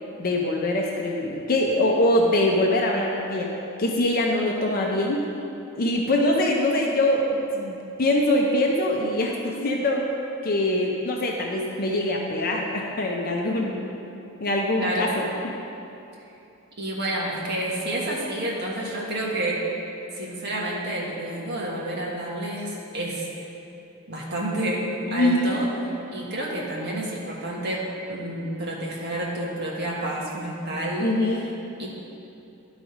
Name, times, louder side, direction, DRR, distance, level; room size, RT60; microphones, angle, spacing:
voice 1, 0.2-3.5 3.8-5.2 5.8-10.1 10.4-13.8 14.4-15.5 25.1-25.6 31.0-31.5, left 1 dB, 45° left, 0 dB, 0.6 m, -23 dB
voice 2, 14.8-15.1 16.8-19.6 20.1-23.3 24.1-24.8 25.1-25.7 26.1-27.8 28.1-31.2 31.8-31.9, right 1 dB, 50° right, -4 dB, 1.5 m, -29 dB
12.0 x 4.0 x 4.9 m, 2.9 s
head